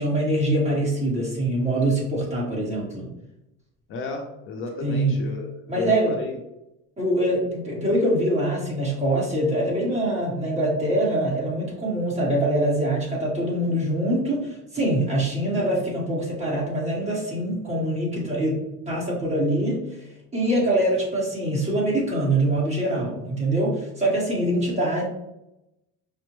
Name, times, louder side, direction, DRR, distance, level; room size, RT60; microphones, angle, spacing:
voice 1, 0.0-3.1 4.8-5.1 5.7-6.2 7.0-19.8 20.3-25.1, right 1 dB, 20° right, -4 dB, 1.3 m, -24 dB
voice 2, 3.9-5.5 5.7-6.4, left 3 dB, 40° left, 2 dB, 0.5 m, -32 dB
5.1 x 2.1 x 3.0 m, 0.90 s
cardioid pair, 150°, 31 cm